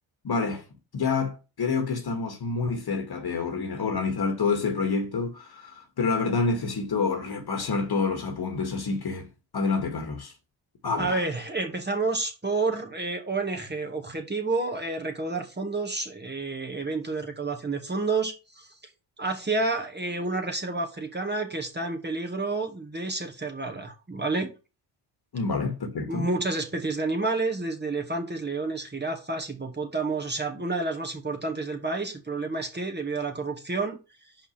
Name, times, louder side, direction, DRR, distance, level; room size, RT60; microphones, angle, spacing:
voice 1, 0.2-0.6 0.9-9.3 9.5-10.3 10.8-11.2 25.3-26.3, left 4 dB, 50° left, 2.1 m, -28 dB
voice 2, 11.0-18.8 19.2-24.5 26.1-34.0, right 3 dB, 20° right, 2.1 m, -29 dB
5.4 x 4.9 x 6.0 m
supercardioid pair, 60°, 49 cm